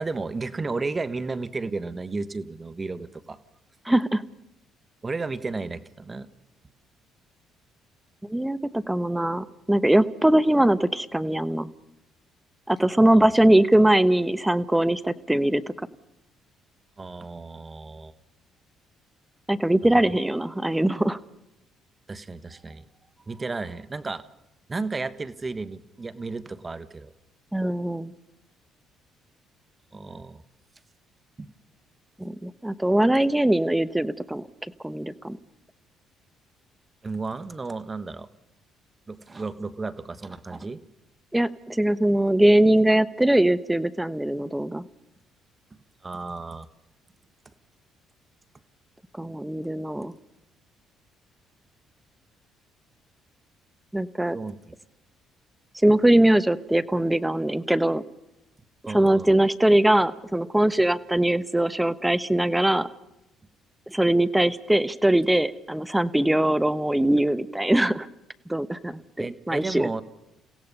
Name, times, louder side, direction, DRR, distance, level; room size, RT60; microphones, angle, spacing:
voice 1, 0.0-3.4 5.0-6.3 13.1-13.2 17.0-18.1 20.1-20.2 22.1-22.8 23.3-24.3 24.7-27.1 29.9-30.4 31.4-31.5 37.0-38.3 39.1-40.8 46.0-46.7 54.3-54.6 58.8-59.3 69.2-70.0, right 3 dB, 30° right, 13 dB, 1.3 m, -33 dB
voice 2, 3.9-4.2 8.3-11.7 12.7-15.7 19.5-21.2 27.5-28.1 32.2-34.5 34.8-35.4 41.3-44.8 49.2-50.1 53.9-54.4 55.8-58.0 58.9-62.9 63.9-68.1 68.5-69.9, right 1 dB, 10° right, 14 dB, 1.1 m, -21 dB
30.0 x 17.0 x 5.5 m, 0.90 s
supercardioid pair, 65°, 0 cm